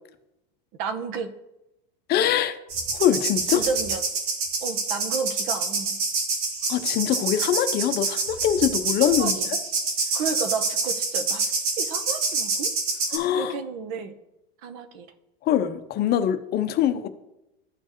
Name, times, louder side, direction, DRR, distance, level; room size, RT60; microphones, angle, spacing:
voice 1, 0.8-1.3 3.5-4.0 4.6-6.0 9.0-9.4 10.1-11.5 11.8-12.7 13.3-14.1 14.6-15.1, right 5 dB, 55° right, 9 dB, 0.9 m, -31 dB
voice 2, 2.1-2.6 2.9-3.6 6.7-9.4 13.1-13.6 15.4-17.1, left 10 dB, 35° left, 10 dB, 0.6 m, -23 dB
sound 1, 2.7-13.2, right 4 dB, 90° right, 1.6 m, -27 dB
13.0 x 4.4 x 3.0 m, 0.91 s
supercardioid pair, 125°, 30 cm